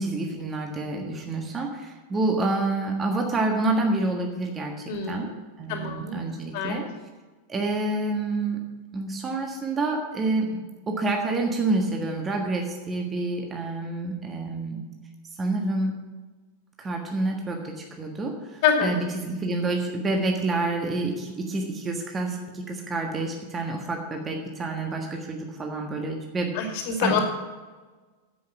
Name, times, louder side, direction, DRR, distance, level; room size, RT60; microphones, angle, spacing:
voice 1, 0.0-5.3 5.6-6.9 7.5-8.6 8.9-10.6 10.9-14.9 15.4-15.9 16.8-26.6 27.0-27.2, right 2 dB, 20° right, 1 dB, 1.5 m, -28 dB
voice 2, 4.9-5.4 5.7-6.2 6.5-6.8 18.6-19.0 26.5-27.2, left 6 dB, 50° left, 3 dB, 2.4 m, -26 dB
11.0 x 8.0 x 6.0 m, 1.3 s
figure-of-eight pair, 90°, 0 cm